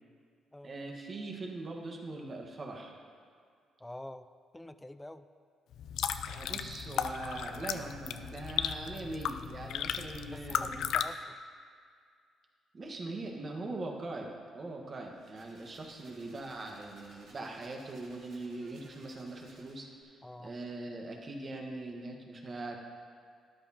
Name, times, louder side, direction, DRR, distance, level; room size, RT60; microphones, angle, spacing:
voice 1, 0.6-2.9 6.3-10.8 12.7-22.8, right 2 dB, 40° right, 1 dB, 1.5 m, -41 dB
voice 2, 3.8-4.3 4.5-5.3 10.3-11.4 20.2-20.5, left 1 dB, 10° left, 12 dB, 0.4 m, -46 dB
sound 1, 5.7-11.1, left 9 dB, 80° left, 0.4 m, -35 dB
sound 2, 15.1-20.0, right 2 dB, 75° right, 2.5 m, -60 dB
13.0 x 10.5 x 3.0 m, 2.2 s
cardioid pair, 90°, 0 cm